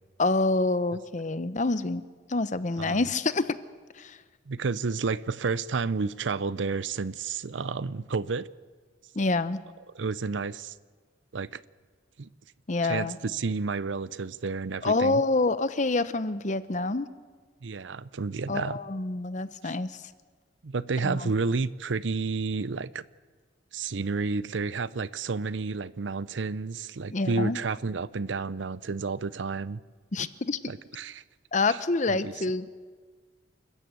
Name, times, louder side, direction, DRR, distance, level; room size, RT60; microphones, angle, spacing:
voice 1, 0.2-2.0 2.3-3.6 4.0-4.2 9.2-9.6 12.7-13.2 14.8-17.1 18.5-19.9 21.0-21.3 27.1-27.6 30.1-30.6 31.5-32.7, left 3 dB, 40° left, 0.8 m, -27 dB
voice 2, 4.5-8.5 9.9-10.7 11.3-11.6 12.2-12.3 12.8-15.2 17.6-18.8 19.6-19.7 20.6-23.0 23.7-29.8 30.7-31.2 31.7-31.8 32.1-32.3, right 4 dB, 85° right, 0.6 m, -31 dB
28.5 x 14.0 x 8.3 m
head